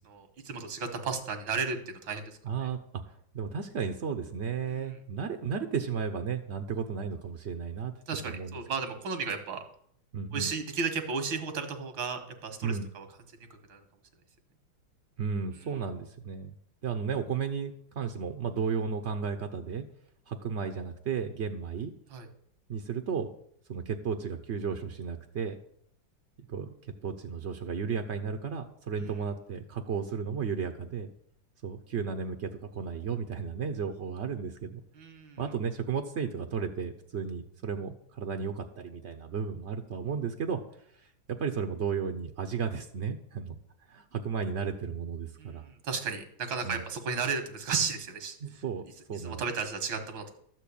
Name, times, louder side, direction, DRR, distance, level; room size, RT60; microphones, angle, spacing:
voice 1, 0.1-2.3 4.7-4.9 8.1-9.6 10.3-13.1 13.7-13.8 22.1-22.3 35.0-35.4 45.4-48.4 49.2-50.3, right 5 dB, 85° right, 6 dB, 2.0 m, -34 dB
voice 2, 2.4-2.8 3.3-7.9 8.2-8.6 10.1-10.5 12.6-12.9 15.2-16.5 16.8-19.8 20.3-21.9 22.7-23.3 23.7-25.5 26.5-26.7 27.0-31.1 31.6-34.8 35.4-40.6 40.9-43.6 43.9-45.6 46.6-46.8 48.4-49.5, right 6 dB, 65° right, 6 dB, 0.6 m, -34 dB
12.5 x 4.5 x 8.4 m, 0.67 s
omnidirectional pair, 2.1 m